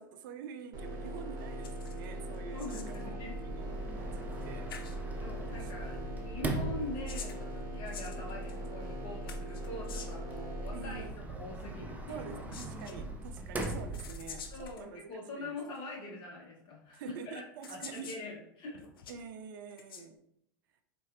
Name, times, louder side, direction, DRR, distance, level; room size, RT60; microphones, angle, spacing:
voice 1, 0.0-4.7 5.5-6.1 10.7-11.2 12.1-15.6 16.9-18.1 19.1-20.2, right 6 dB, 70° right, 8 dB, 0.4 m, -47 dB
sound 1, 0.7-11.1, right 1 dB, 35° right, 1.1 m, -40 dB
sound 2, 1.6-2.1 2.3-3.0 4.3-4.4 4.7-5.0 6.7-8.7 9.3-10.3 12.3-13.0 13.6-14.8 15.8-15.9 16.9-17.0 17.6-18.2 18.7-19.2 19.7-20.1, left 7 dB, 85° left, 0.4 m, -48 dB
voice 2, 2.5-3.4 4.0-4.2 5.2-11.0 11.3-12.4 12.8-13.0 14.5-17.4 17.7-18.8, left 2 dB, 40° left, -1 dB, 1.1 m, -44 dB
Sliding door, 3.2-14.7, right 2 dB, 15° right, 0.5 m, -42 dB
4.0 x 2.6 x 2.5 m, 0.73 s
hypercardioid pair, 100°, 12 cm